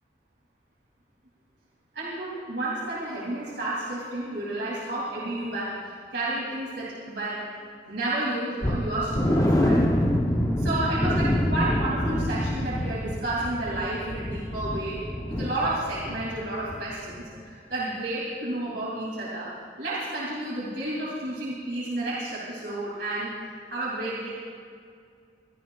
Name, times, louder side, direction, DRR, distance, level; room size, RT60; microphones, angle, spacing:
voice 1, 1.9-7.4 7.9-9.9 10.6-19.5 19.8-23.3 23.7-24.3, right 1 dB, 75° right, -7 dB, 2.7 m, -31 dB
sound 1, 8.6-16.4 16.6-16.8 17.2-17.3, left 1 dB, 20° left, 0.7 m, -26 dB
23.0 x 14.0 x 2.3 m, 2.2 s
head